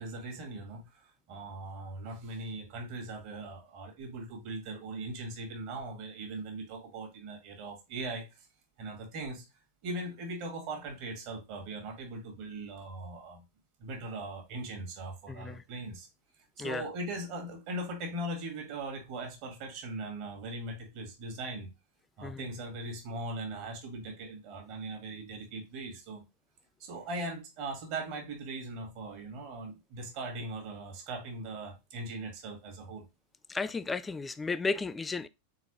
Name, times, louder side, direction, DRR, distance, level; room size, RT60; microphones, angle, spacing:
voice 1, 0.0-8.5 8.8-9.4 9.8-13.4 13.8-16.1 16.4-21.7 22.2-26.2 26.8-33.0, right 2 dB, 45° right, 1.6 m, -40 dB
voice 2, 15.3-15.6 16.6-16.9 22.2-22.5 33.5-35.3, left 4 dB, 15° left, 0.3 m, -34 dB
4.0 x 4.0 x 3.0 m
figure-of-eight pair, 90°, 0 cm